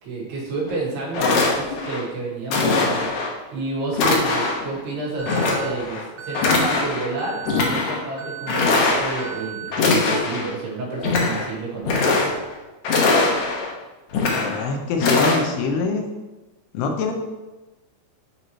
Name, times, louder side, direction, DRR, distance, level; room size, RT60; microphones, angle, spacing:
voice 1, 0.0-12.2, right 3 dB, 90° right, -4 dB, 3.8 m, -30 dB
sound 1, 0.7-0.8 1.1-2.0 2.5-3.3 3.9-4.7 5.3-6.0 6.3-7.1 7.4-8.0 8.5-9.3 9.7-10.5 10.9-11.5 11.8-12.5 12.8-13.7 14.1-14.6 15.0-15.4, left 3 dB, 70° left, 1.8 m, -21 dB
Alarm, 5.2-5.7 6.2-6.7 7.2-7.7 8.2-8.7 9.2-9.7, right 8 dB, 75° right, 1.3 m, -35 dB
voice 2, 14.3-16.1 16.7-17.1, left 4 dB, 85° left, 4 dB, 2.8 m, -24 dB
9.1 x 3.1 x 4.3 m, 1.1 s
omnidirectional pair, 4.5 m